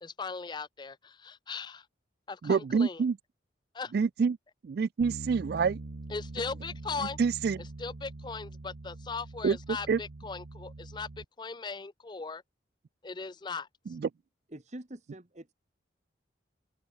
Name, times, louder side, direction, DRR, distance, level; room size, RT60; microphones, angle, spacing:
voice 1, 0.0-1.9 2.3-3.0 3.7-3.9 6.1-7.2 7.8-12.4 13.0-13.7, left 4 dB, 20° left, 0.4 m, -38 dB
voice 2, 2.4-3.2 3.9-4.4 4.6-5.8 7.2-7.6 9.4-10.0 13.9-14.1, right 5 dB, 50° right, 0.3 m, -27 dB
Bass guitar, 5.0-11.2, right 2 dB, 80° right, 0.9 m, -44 dB
voice 3, 14.5-15.5, right 1 dB, 35° right, 1.4 m, -45 dB
open air
head